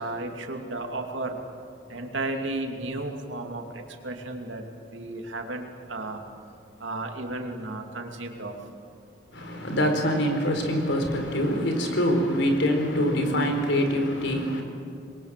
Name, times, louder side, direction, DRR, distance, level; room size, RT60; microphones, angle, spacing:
voice 1, 0.0-1.4 1.9-6.2 6.8-8.5, right 2 dB, 90° right, 2.9 m, -34 dB
voice 2, 9.3-14.6, equal, 80° left, 4.2 m, -24 dB
27.5 x 22.0 x 7.6 m
head